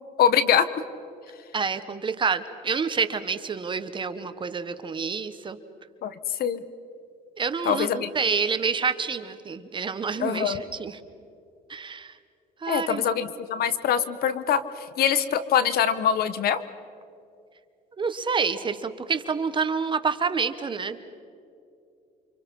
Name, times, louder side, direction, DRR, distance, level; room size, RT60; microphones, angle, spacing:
voice 1, 0.2-0.6 6.0-6.6 7.6-8.1 10.2-10.6 12.7-16.6, left 8 dB, 65° left, 13 dB, 1.3 m, -24 dB
voice 2, 1.5-5.6 7.4-11.0 11.7-12.1 12.6-13.0 18.0-21.0, right 5 dB, 30° right, 10 dB, 1.4 m, -28 dB
29.5 x 26.0 x 5.6 m, 2.5 s
cardioid pair, 110°, 17 cm